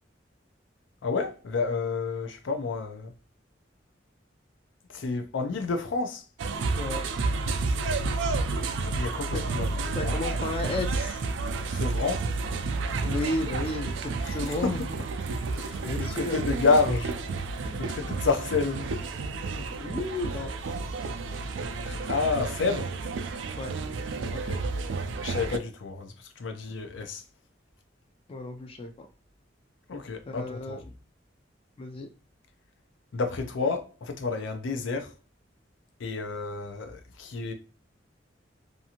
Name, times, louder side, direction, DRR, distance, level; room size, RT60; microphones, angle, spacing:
voice 1, 1.0-3.1 4.9-6.2 8.8-10.2 11.7-12.3 14.3-14.8 15.5-17.1 17.8-18.9 21.8-22.9 24.3-24.6 25.2-27.2 29.9-30.8 33.1-35.1 36.0-37.5, left 4 dB, 85° left, 0.5 m, -30 dB
sound 1, 6.4-25.6, right 3 dB, 85° right, 0.4 m, -31 dB
voice 2, 9.3-9.7 9.9-11.2 13.0-14.9 15.8-16.4 17.6-17.8 19.7-20.5 23.6-23.7 28.3-29.1 30.3-30.8 31.8-32.1, left 2 dB, 30° left, 0.3 m, -33 dB
2.6 x 2.5 x 2.7 m
head